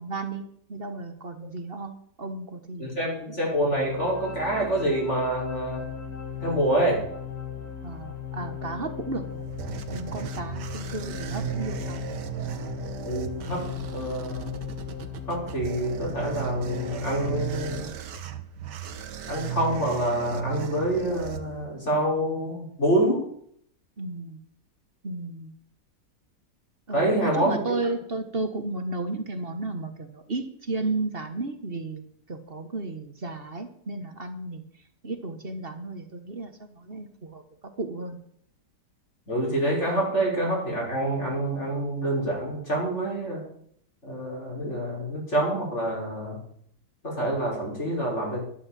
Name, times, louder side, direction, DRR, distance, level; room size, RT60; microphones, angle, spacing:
voice 1, 0.0-2.9 7.8-9.4 9.9-12.0 24.0-24.4 25.0-25.5 26.9-34.6 35.0-37.4 37.8-38.2, right 2 dB, 35° right, 8 dB, 1.5 m, -33 dB
voice 2, 2.8-5.8 6.4-7.0 13.0-13.6 13.9-14.5 15.3-17.9 19.3-23.2 26.9-27.8 39.3-43.4 44.0-46.4 47.0-48.4, right 1 dB, 40° left, -3 dB, 5.6 m, -27 dB
sound 1, 3.5-17.8, left 8 dB, 65° left, 3.0 m, -37 dB
sound 2, 9.0-22.0, right 10 dB, 85° right, 1.7 m, -36 dB
12.0 x 11.5 x 7.5 m, 0.65 s
omnidirectional pair, 1.8 m